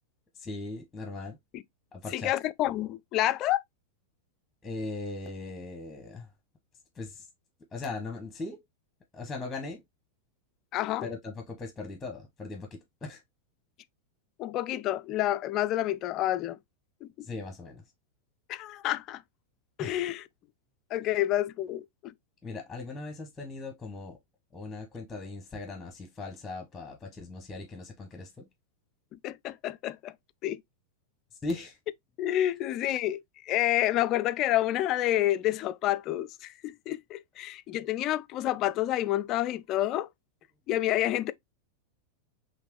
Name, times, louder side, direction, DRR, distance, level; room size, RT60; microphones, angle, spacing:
voice 1, 0.3-1.4 1.9-2.3 4.6-6.3 6.9-7.3 7.7-8.6 9.1-9.8 11.0-13.2 17.2-17.8 19.8-20.1 22.4-24.2 24.5-28.5 31.4-31.8, left 3 dB, 10° left, 1.1 m, -39 dB
voice 2, 2.1-3.6 10.7-11.1 14.4-16.6 17.0-17.3 18.5-19.2 19.8-20.2 20.9-22.1 29.2-30.1 30.4-30.6 32.2-33.2 33.5-40.1 40.7-41.3, left 14 dB, 35° left, 0.4 m, -29 dB
5.1 x 3.1 x 3.1 m
figure-of-eight pair, 90°, 0 cm